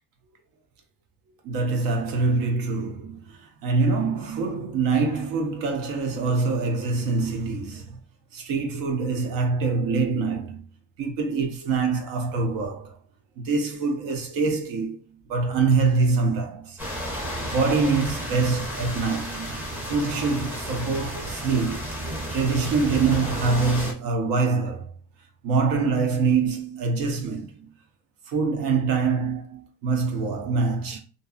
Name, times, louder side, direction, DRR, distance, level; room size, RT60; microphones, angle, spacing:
voice 1, 1.4-8.0 8.3-10.6 11.0-13.0 13.4-16.8 17.4-19.5 19.8-22.0 22.3-24.9 25.4-27.7 28.3-31.0, right 4 dB, 70° right, 0.7 m, -25 dB
sound 1, 16.8-23.9, equal, 5° right, 0.6 m, -32 dB
2.6 x 2.3 x 2.4 m
cardioid pair, 140°, 35 cm